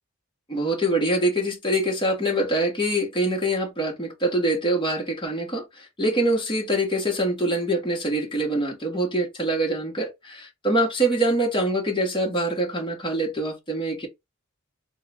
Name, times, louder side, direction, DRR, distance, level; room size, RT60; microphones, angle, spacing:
voice 1, 0.5-5.7 6.0-14.1, right 1 dB, 25° left, 1.4 m, -24 dB
3.7 x 2.4 x 3.4 m
head